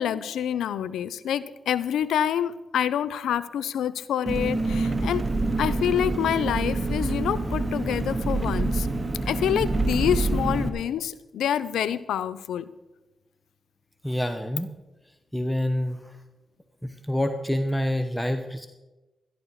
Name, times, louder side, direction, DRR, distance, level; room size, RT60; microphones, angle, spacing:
voice 1, 0.0-5.2 5.6-8.9 9.3-12.7, left 9 dB, 90° left, 16 dB, 0.5 m, -27 dB
Engine, 4.3-10.7, right 2 dB, 30° right, 2.1 m, -26 dB
voice 2, 14.0-14.7 15.3-16.2 16.8-18.7, left 1 dB, 5° left, 8 dB, 1.0 m, -27 dB
14.0 x 11.0 x 4.8 m, 1.1 s
cardioid pair, 50°, 0 cm